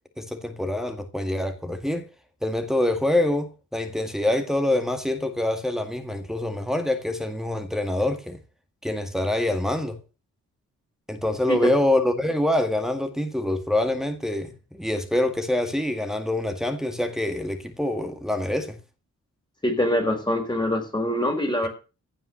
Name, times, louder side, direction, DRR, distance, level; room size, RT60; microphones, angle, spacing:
voice 1, 0.2-2.1 2.4-8.4 8.8-10.0 11.1-18.8, left 1 dB, ahead, 1.9 m, -25 dB
voice 2, 19.6-21.7, left 1 dB, 15° left, 4.2 m, -24 dB
16.0 x 5.8 x 7.8 m
wide cardioid pair, 110°, 31 cm